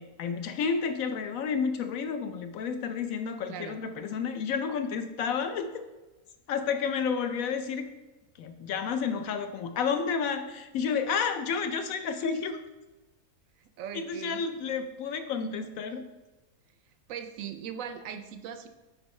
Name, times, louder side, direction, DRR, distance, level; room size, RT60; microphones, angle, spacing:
voice 1, 0.0-5.7 6.5-7.9 8.4-12.6 13.9-16.0, left 6 dB, 70° left, 8 dB, 0.9 m, -31 dB
voice 2, 3.5-3.8 13.8-14.4 17.1-18.7, right 8 dB, 70° right, 8 dB, 0.8 m, -39 dB
8.0 x 5.3 x 3.1 m, 1.1 s
omnidirectional pair, 1.7 m